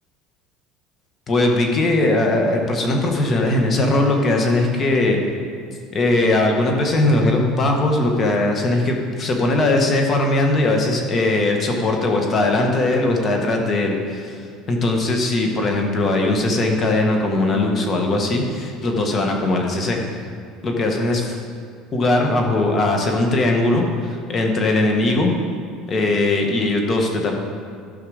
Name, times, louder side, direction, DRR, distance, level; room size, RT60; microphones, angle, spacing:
voice 1, 1.3-5.2 5.9-14.4 14.7-20.0 20.6-21.4 21.9-25.3 25.9-27.3, left 2 dB, 30° left, 2 dB, 1.4 m, -19 dB
12.5 x 5.7 x 5.0 m, 2.2 s
cardioid pair, 130°, 0 cm